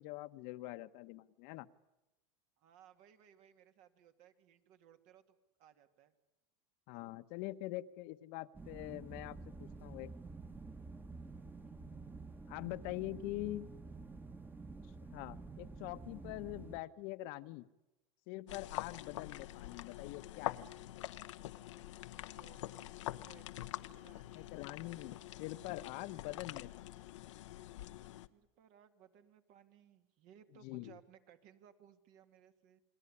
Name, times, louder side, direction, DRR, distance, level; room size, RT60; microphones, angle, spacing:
voice 1, 0.0-1.7 6.9-10.1 12.5-13.7 15.1-17.7 18.3-20.7 24.3-27.0 30.6-31.0, left 17 dB, 60° left, 11 dB, 1.1 m, -44 dB
voice 2, 2.6-6.1 11.6-11.8 22.3-24.6 28.3-32.8, right 9 dB, 55° right, 8 dB, 2.3 m, -63 dB
sound 1, 8.5-16.8, right 3 dB, 10° right, 1.4 m, -50 dB
sound 2, 18.5-28.3, left 14 dB, 85° left, 1.0 m, -45 dB
29.0 x 20.5 x 9.9 m, 1.0 s
supercardioid pair, 125°, 15 cm